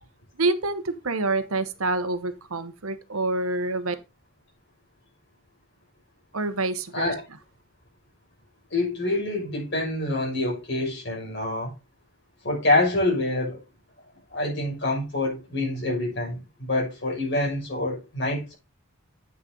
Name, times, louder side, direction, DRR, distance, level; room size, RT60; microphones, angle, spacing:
voice 1, 0.4-3.9 6.3-7.1, right 2 dB, 80° right, 1.1 m, -27 dB
voice 2, 8.7-11.7 12.4-13.6 14.3-18.5, left 2 dB, 55° left, 6.0 m, -26 dB
9.2 x 6.4 x 3.8 m
head